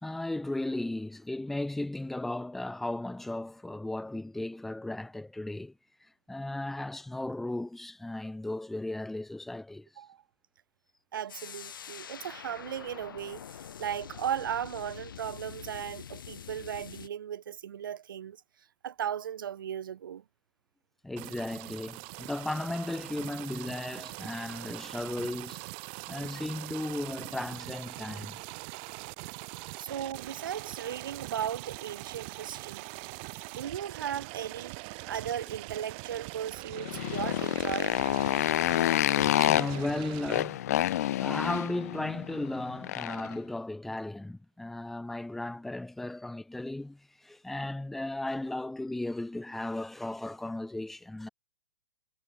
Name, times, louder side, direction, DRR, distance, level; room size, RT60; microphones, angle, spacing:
voice 1, 0.0-5.7 6.3-9.9 21.0-25.6 26.1-28.4 39.3-40.6 41.2-51.3, left 2 dB, ahead, 0.6 m, -35 dB
voice 2, 11.1-18.4 18.8-20.2 29.8-32.9 33.5-34.8 35.0-38.0, right 9 dB, 70° right, 0.9 m, -36 dB
sound 1, 11.3-17.1, left 8 dB, 70° left, 8.0 m, -45 dB
sound 2, 21.2-40.4, right 33 dB, 30° right, 1.2 m, -42 dB
Motorcycle, 36.7-43.3, left 13 dB, 45° left, 0.6 m, -28 dB
hypercardioid pair, 155°, 11 cm